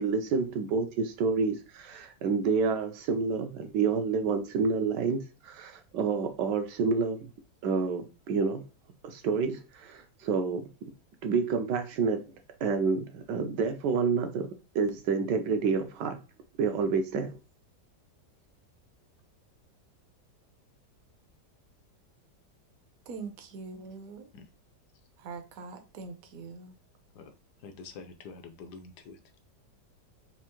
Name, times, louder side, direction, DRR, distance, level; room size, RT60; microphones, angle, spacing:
voice 1, 0.0-7.3 7.6-8.6 9.0-10.7 11.2-12.2 12.6-14.5 14.7-16.2 16.6-17.3, right 5 dB, 80° right, 1.2 m, -28 dB
voice 2, 23.1-24.3 25.2-26.7, right 4 dB, 60° right, 1.0 m, -42 dB
voice 3, 27.6-29.2, left 4 dB, 70° left, 1.2 m, -46 dB
4.5 x 2.4 x 2.9 m
omnidirectional pair, 1.9 m